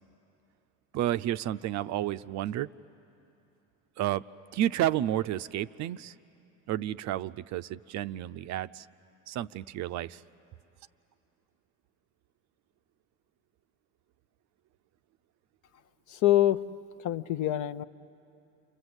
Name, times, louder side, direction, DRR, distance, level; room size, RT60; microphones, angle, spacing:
voice 1, 0.9-2.7 4.0-4.2 4.5-6.1 6.7-8.9 9.3-10.2, right 12 dB, 45° right, 13 dB, 0.5 m, -31 dB
voice 2, 16.1-16.6 17.0-17.8, left 13 dB, 50° left, 13 dB, 0.8 m, -25 dB
29.0 x 25.5 x 8.0 m, 2.8 s
supercardioid pair, 95°, 39 cm